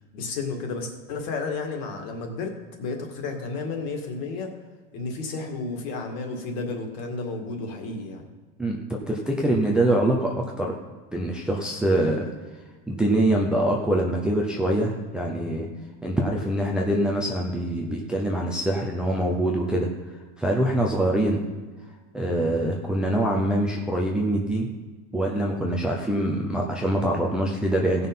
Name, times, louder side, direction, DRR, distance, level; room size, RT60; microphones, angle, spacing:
voice 1, 0.1-2.5 2.8-4.5 4.9-8.2, left 3 dB, 50° left, 3 dB, 2.1 m, -32 dB
voice 2, 9.1-10.7 11.1-12.3 12.9-15.7 16.0-19.9 20.4-21.4 22.1-24.7 25.1-28.1, right 1 dB, 5° right, -1 dB, 0.5 m, -24 dB
16.5 x 5.7 x 5.5 m, 1.4 s
supercardioid pair, 170°, 34 cm